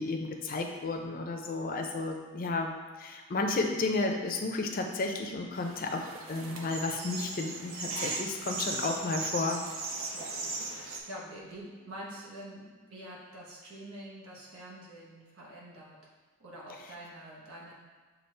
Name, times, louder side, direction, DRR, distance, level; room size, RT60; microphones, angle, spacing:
voice 1, 0.0-9.6, left 3 dB, 40° left, 3 dB, 0.4 m, -32 dB
sound 1, 5.5-11.0, right 3 dB, 65° right, 0.6 m, -38 dB
voice 2, 10.1-16.0 16.4-17.7, right 1 dB, 85° right, -5 dB, 1.1 m, -46 dB
6.8 x 2.4 x 3.2 m, 1.4 s
head